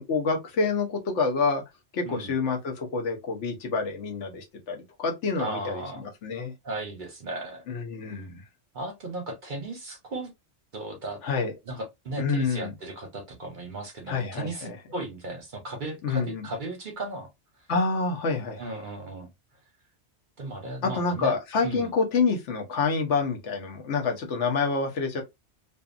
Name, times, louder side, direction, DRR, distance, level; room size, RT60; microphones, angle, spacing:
voice 1, 0.0-1.6 1.9-6.5 7.7-8.4 11.2-11.5 12.2-12.7 14.1-14.8 16.0-16.5 17.7-18.6 20.8-25.2, left 4 dB, 75° left, 1.1 m, -27 dB
voice 2, 5.4-6.0 6.6-7.6 8.7-10.3 10.7-11.2 11.7-17.3 18.6-19.3 20.4-21.3 21.6-21.9, right 2 dB, 50° right, 0.7 m, -36 dB
2.5 x 2.5 x 2.4 m
omnidirectional pair, 1.2 m